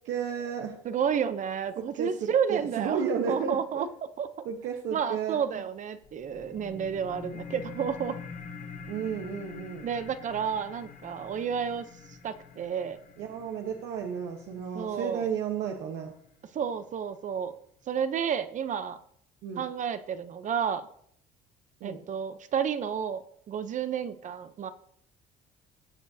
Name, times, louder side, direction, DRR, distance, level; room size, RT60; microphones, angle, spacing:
voice 1, 0.0-0.8 1.8-3.9 4.4-5.4 8.9-9.8 13.2-16.1 19.4-19.6 21.8-22.0, right 7 dB, 85° right, 2 dB, 1.1 m, -33 dB
voice 2, 0.8-3.9 4.2-4.3 4.9-8.2 9.8-11.9 12.2-13.0 14.7-15.3 16.5-17.6 17.9-19.0 19.6-20.9 21.8-24.7, right 7 dB, 45° right, 12 dB, 0.7 m, -31 dB
sound 1, 6.0-17.0, left 5 dB, 50° left, 1.2 m, -46 dB
18.5 x 7.1 x 2.8 m, 0.66 s
cardioid pair, 110°, 17 cm